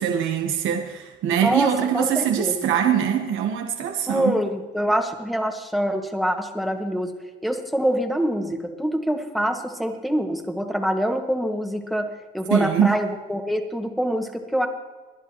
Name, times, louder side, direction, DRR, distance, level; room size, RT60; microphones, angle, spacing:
voice 1, 0.0-4.4 12.5-13.0, right 9 dB, 85° right, 4 dB, 1.1 m, -23 dB
voice 2, 1.4-2.7 4.1-7.1 7.4-12.1 12.3-14.7, equal, ahead, 3 dB, 1.8 m, -25 dB
21.5 x 11.0 x 3.0 m, 1.3 s
cardioid pair, 90°, 20 cm